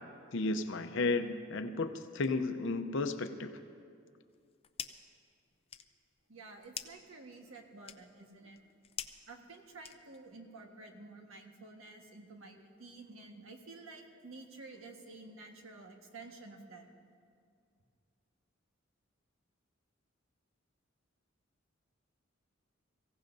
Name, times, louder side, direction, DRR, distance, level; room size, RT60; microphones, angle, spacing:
voice 1, 0.3-3.5, left 3 dB, 65° left, 9 dB, 0.7 m, -33 dB
sound 1, 4.3-5.2 5.5-10.4, left 8 dB, 30° left, 0.5 m, -47 dB
voice 2, 6.3-8.6 9.3-16.9, right 3 dB, 80° right, 2 dB, 1.5 m, -51 dB
23.5 x 16.0 x 2.7 m, 2.3 s
head